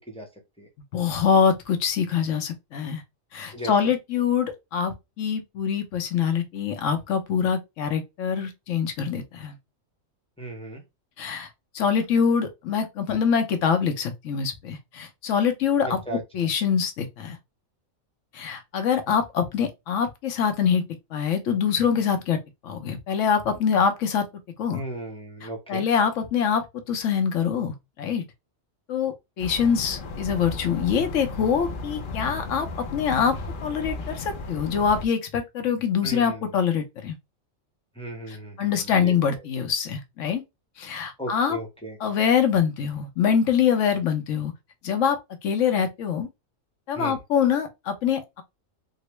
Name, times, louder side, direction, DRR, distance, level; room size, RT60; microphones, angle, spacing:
voice 1, 0.9-3.0 3.3-9.6 11.2-11.5 11.7-17.4 18.3-20.8 21.1-22.4 22.6-24.2 24.6-24.8 25.4-28.2 28.9-33.4 33.6-37.2 38.3-40.4 40.8-41.6 42.0-44.5 44.8-45.2 45.4-46.3 46.9-48.4, left 7 dB, 75° left, 1.0 m, -24 dB
voice 2, 3.5-3.9 10.4-10.8 15.8-16.5 24.7-25.9 36.0-36.5 37.9-39.1 41.2-42.0 46.9-47.2, right 1 dB, 5° left, 0.7 m, -36 dB
sound 1, 29.4-35.1, left 3 dB, 55° left, 0.6 m, -35 dB
3.7 x 2.0 x 3.0 m
omnidirectional pair, 1.3 m